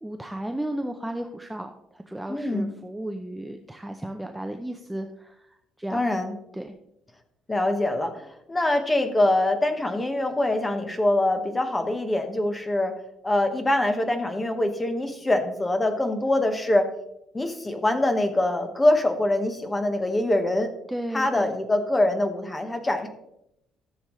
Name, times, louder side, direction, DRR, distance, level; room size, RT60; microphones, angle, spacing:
voice 1, 0.0-6.1 6.5-6.7 20.9-21.5, right 1 dB, 5° right, 4 dB, 0.5 m, -34 dB
voice 2, 2.3-2.7 5.9-6.3 7.5-12.9 13.2-16.9 17.3-20.7 21.1-23.1, left 1 dB, 10° left, 7 dB, 1.0 m, -24 dB
15.0 x 7.0 x 3.1 m, 0.81 s
cardioid pair, 170°, 0 cm